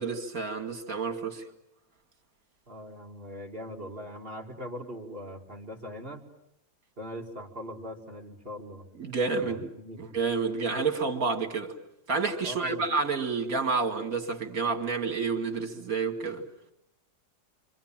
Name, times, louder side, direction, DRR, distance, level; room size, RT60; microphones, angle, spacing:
voice 1, 0.0-1.5 9.0-9.7 10.0-11.7 12.1-16.4, right 4 dB, 60° right, 2.7 m, -29 dB
voice 2, 2.7-6.2 7.0-8.9 9.4-10.0 12.4-12.9, equal, 35° right, 2.5 m, -41 dB
28.0 x 25.5 x 7.5 m
omnidirectional pair, 1.7 m